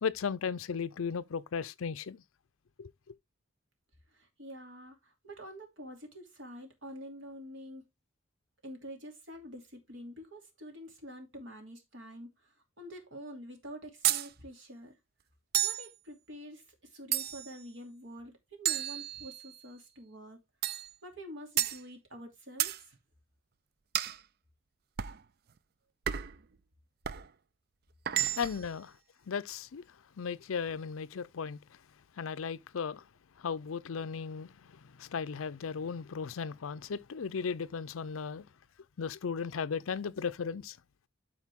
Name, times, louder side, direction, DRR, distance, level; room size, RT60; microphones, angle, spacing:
voice 1, 0.0-2.2 2.8-2.9 28.4-28.9 29.3-29.8 30.2-31.6 32.2-33.0 33.4-34.5 35.0-38.5 39.0-40.8, left 6 dB, 85° left, 0.5 m, -36 dB
voice 2, 4.1-7.8 8.6-15.0 15.6-20.4 21.0-23.0, equal, 65° right, 2.9 m, -47 dB
sound 1, 14.0-14.3 15.5-15.9 17.1-17.6 18.7-19.6 20.6-20.9 21.6-21.8 22.6-22.8 23.9-24.2 25.0-25.2 26.1-26.4 27.0-27.3 28.1-28.7, right 11 dB, 50° right, 0.4 m, -31 dB
12.0 x 4.5 x 3.6 m
head